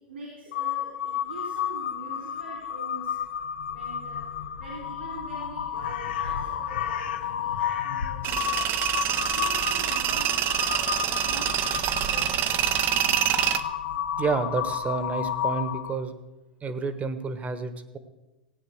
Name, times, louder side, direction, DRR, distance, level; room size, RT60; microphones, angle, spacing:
voice 1, 0.1-3.4 3.7-8.7 9.2-12.8, right 2 dB, 80° right, -1 dB, 3.7 m, -44 dB
Crow, 0.5-16.0, left 9 dB, 70° left, 1.0 m, -31 dB
Tools, 8.2-13.6, right 11 dB, 40° right, 0.8 m, -26 dB
voice 2, 14.2-16.1 16.6-18.0, right 4 dB, 25° right, 12 dB, 1.3 m, -29 dB
16.0 x 9.2 x 6.3 m, 1.1 s
hypercardioid pair, 95°, 6 cm